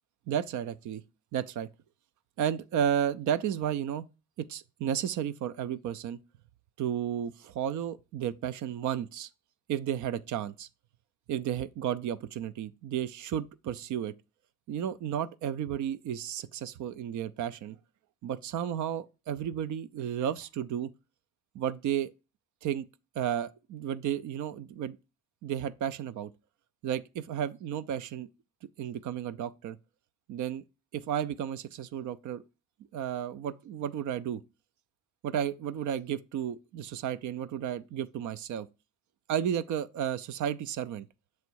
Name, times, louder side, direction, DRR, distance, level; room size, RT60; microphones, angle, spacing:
voice 1, 0.3-1.0 1.3-1.7 2.4-4.1 4.4-6.2 6.8-9.3 9.7-10.7 11.3-14.1 14.7-17.8 18.2-20.9 21.5-22.1 22.6-22.9 23.1-25.0 25.4-26.3 26.8-28.3 28.8-29.8 30.3-30.6 30.9-32.4 32.9-34.4 35.2-38.7 39.3-41.1, right 9 dB, 75° right, 0.6 m, -33 dB
6.9 x 3.2 x 4.6 m
cardioid pair, 90°, 30 cm